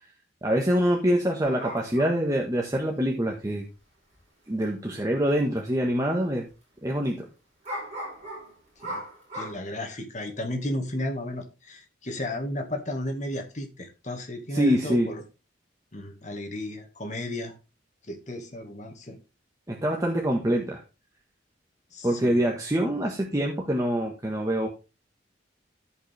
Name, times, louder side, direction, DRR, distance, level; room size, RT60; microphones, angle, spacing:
voice 1, 0.4-3.7 4.5-6.5 6.8-7.3 14.5-15.1 19.7-20.8 22.0-24.7, equal, 20° right, 0 dB, 1.4 m, -25 dB
sound 1, 1.4-2.2 4.2-4.3 4.6-4.7 5.4-5.6 5.9-6.0 7.6-9.5, equal, 35° right, 5.5 m, -37 dB
voice 2, 9.3-15.2 15.9-17.6 18.1-19.2 21.9-22.4, left 1 dB, 40° left, 4 dB, 1.9 m, -34 dB
15.0 x 5.3 x 3.4 m, 0.29 s
head